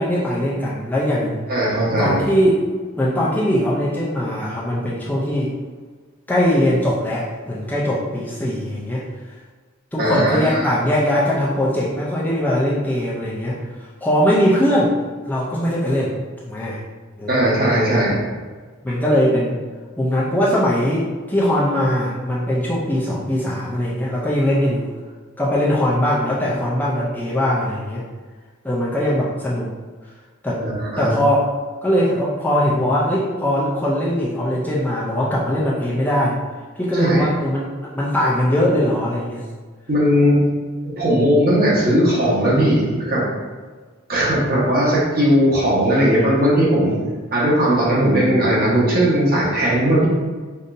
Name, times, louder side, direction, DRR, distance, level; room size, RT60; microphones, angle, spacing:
voice 1, 0.0-1.4 2.0-2.7 3.0-5.5 6.3-9.0 9.9-14.9 15.2-16.1 16.4-16.8 17.2-17.4 18.8-19.6 20.0-24.8 25.4-28.0 28.6-29.7 30.4-30.6 31.0-31.5 31.8-36.4 36.8-39.5, equal, 10° left, -6 dB, 0.5 m, -20 dB
voice 2, 1.5-2.2 10.0-10.7 17.3-18.2 30.6-31.1 36.9-37.2 39.9-40.4 40.8-43.3 44.1-46.9 47.3-50.1, equal, 45° right, -6 dB, 1.3 m, -18 dB
5.2 x 2.6 x 2.6 m, 1.5 s
head